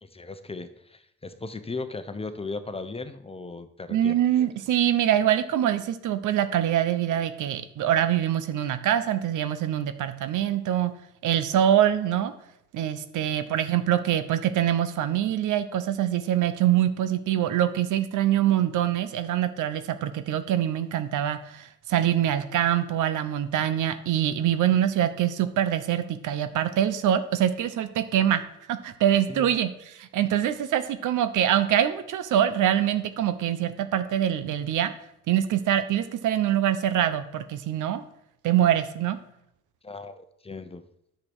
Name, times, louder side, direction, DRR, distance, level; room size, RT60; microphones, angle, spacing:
voice 1, 0.0-4.2 13.1-13.3 29.3-29.6 39.8-40.8, left 3 dB, 20° left, 10 dB, 1.0 m, -37 dB
voice 2, 3.9-10.9 11.2-12.3 12.7-28.4 28.7-34.9 35.3-38.0 38.4-39.2, right 11 dB, 80° right, 11 dB, 1.1 m, -24 dB
9.8 x 7.0 x 6.2 m, 0.79 s
cardioid pair, 90°, 30 cm